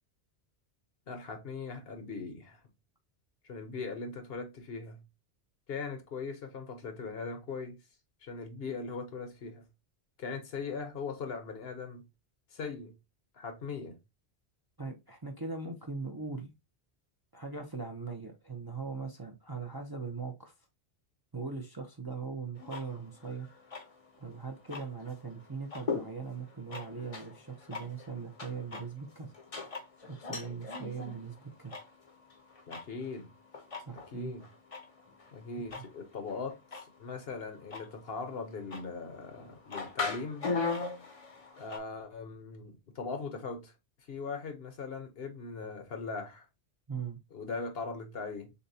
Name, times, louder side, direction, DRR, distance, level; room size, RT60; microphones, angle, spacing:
voice 1, 1.1-2.6 3.4-5.0 5.7-7.8 8.2-9.7 10.2-12.0 12.5-12.9 13.3-14.0 32.7-33.3 33.9-34.4 35.3-40.5 41.6-43.7 44.1-46.5 47.3-48.5, left 4 dB, 65° left, 1.1 m, -40 dB
voice 2, 14.8-16.5 17.3-20.5 21.3-23.5 24.2-29.3 30.1-31.8 33.9-34.3 35.6-35.8 46.9-47.2, right 4 dB, 25° right, 0.5 m, -40 dB
sound 1, 22.6-41.8, left 4 dB, 35° left, 0.8 m, -41 dB
6.6 x 2.2 x 2.7 m
omnidirectional pair, 1.1 m